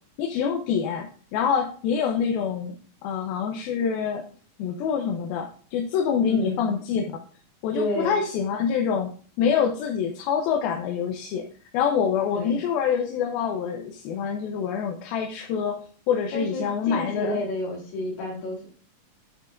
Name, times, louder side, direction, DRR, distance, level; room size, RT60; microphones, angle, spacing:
voice 1, 0.2-2.8 3.0-4.2 4.6-7.0 7.6-9.1 9.4-11.5 11.7-15.8 16.1-17.4, left 7 dB, 85° left, 2 dB, 2.7 m, -26 dB
voice 2, 6.3-6.7 7.7-8.2 12.3-12.6 16.3-18.7, left 1 dB, 70° left, -1 dB, 4.7 m, -30 dB
10.0 x 8.9 x 2.5 m, 0.43 s
omnidirectional pair, 4.3 m